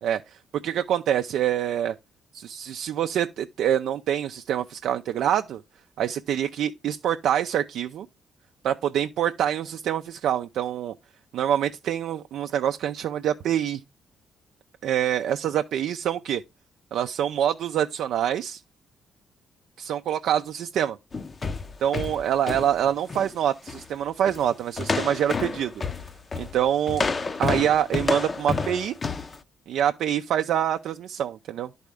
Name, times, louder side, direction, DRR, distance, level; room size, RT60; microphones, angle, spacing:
voice 1, 0.0-0.4 0.6-1.9 2.3-5.6 6.0-8.1 8.6-10.9 11.3-13.8 14.8-16.4 16.9-18.6 19.8-21.0 21.8-25.7 26.4-27.0 27.4-28.9 29.7-31.7, right 10 dB, 75° right, 0.4 m, -25 dB
sound 1, 21.1-23.3 23.7-23.9 24.3-24.5 24.8-29.4, left 4 dB, 30° left, 0.6 m, -29 dB
10.5 x 4.1 x 3.5 m
cardioid pair, 90°, 0 cm